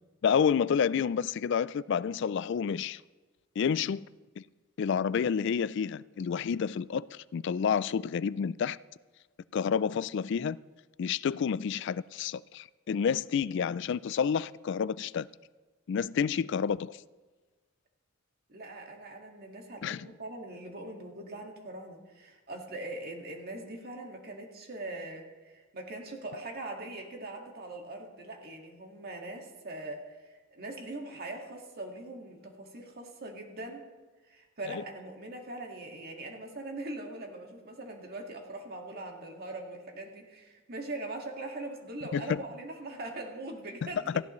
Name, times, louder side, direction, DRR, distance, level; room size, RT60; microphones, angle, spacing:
voice 1, 0.2-3.0 3.6-4.1 4.4-4.5 4.8-8.8 9.5-10.6 11.0-15.3 15.9-17.0 19.8-20.1 34.7-34.8 42.1-42.4 44.1-44.2, left 7 dB, 60° left, 0.3 m, -29 dB
voice 2, 18.5-33.9 34.2-44.1, right 2 dB, 50° right, 1.9 m, -41 dB
18.0 x 15.0 x 3.1 m
head